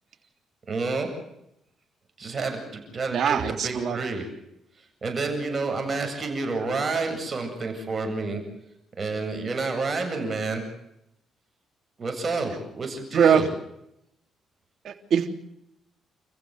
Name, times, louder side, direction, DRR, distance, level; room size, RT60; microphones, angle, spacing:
voice 1, 0.7-1.1 2.2-4.2 5.0-8.4 9.0-10.6 12.0-13.5, right 3 dB, 40° right, 5 dB, 7.7 m, -29 dB
voice 2, 3.1-4.0 13.1-13.5 14.8-15.3, right 7 dB, 65° right, 6 dB, 3.4 m, -22 dB
30.0 x 15.0 x 8.0 m, 0.81 s
cardioid pair, 90°, 0 cm